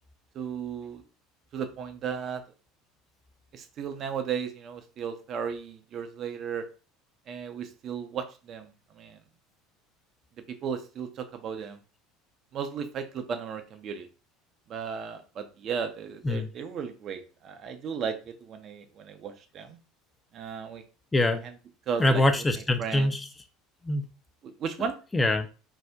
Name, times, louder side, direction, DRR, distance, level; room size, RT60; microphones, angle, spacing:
voice 1, 0.3-1.0 1.5-2.4 3.5-6.6 7.3-9.2 10.5-11.8 12.5-14.1 14.7-19.8 20.3-20.8 21.4-21.5 21.9-22.2 22.8-23.1 24.4-25.0, right 7 dB, 45° right, 7 dB, 0.5 m, -35 dB
voice 2, 21.1-21.4 22.0-23.3 23.8-24.1 25.1-25.5, left 1 dB, 15° left, 8 dB, 0.4 m, -24 dB
2.6 x 2.1 x 3.4 m, 0.35 s
figure-of-eight pair, 70°, 0 cm